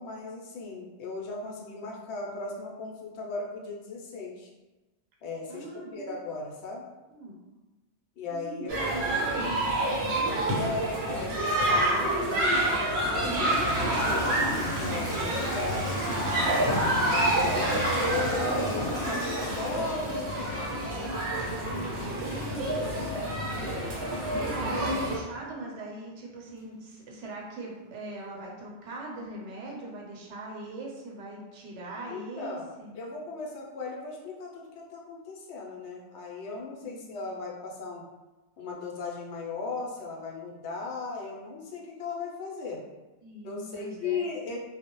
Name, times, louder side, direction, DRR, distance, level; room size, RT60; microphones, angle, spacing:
voice 1, 0.0-4.5 5.2-5.7 5.9-6.9 8.2-8.9 10.5-16.0 16.8-20.9 22.9-23.3 32.1-32.7 32.9-38.0 38.6-42.8 43.4-44.6, left 4 dB, 80° left, -2 dB, 0.9 m, -37 dB
voice 2, 5.5-6.1 7.1-7.4 8.3-9.6 9.9-10.2 17.0-17.3 21.6-23.3 24.2-32.9 36.8-37.1 43.2-44.2, right 2 dB, 80° right, -2 dB, 0.9 m, -40 dB
sound 1, 8.7-25.2, right 1 dB, 55° right, 0.7 m, -28 dB
Toilet flush / Trickle dribble, 13.1-20.9, equal, 5° left, 0.6 m, -36 dB
2.3 x 2.0 x 2.9 m, 1.1 s
omnidirectional pair, 1.2 m